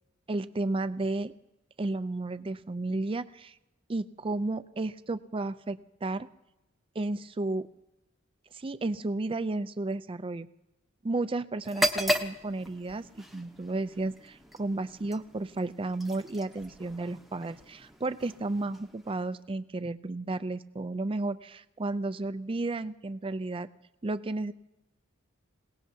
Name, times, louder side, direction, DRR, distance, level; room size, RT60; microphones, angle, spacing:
voice 1, 0.3-1.3 1.8-3.5 3.9-6.3 7.0-7.7 8.5-10.5 11.0-23.7 24.0-24.5, right 2 dB, 25° right, 12 dB, 0.4 m, -33 dB
sound 1, 11.6-19.4, equal, ahead, 0.9 m, -36 dB
27.5 x 18.0 x 2.8 m, 0.97 s
head